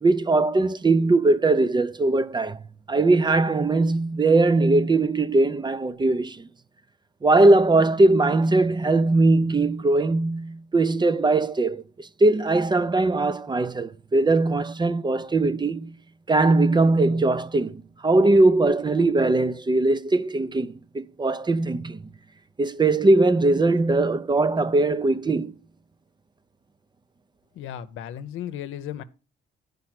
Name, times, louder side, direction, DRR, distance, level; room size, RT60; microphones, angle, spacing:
voice 1, 0.0-2.6 2.9-6.5 7.2-15.9 16.3-22.0 22.6-25.5, right 2 dB, 20° right, 0.6 m, -20 dB
voice 2, 27.6-29.0, left 10 dB, 85° left, 0.8 m, -35 dB
10.5 x 5.4 x 5.8 m
cardioid pair, 90°, 20 cm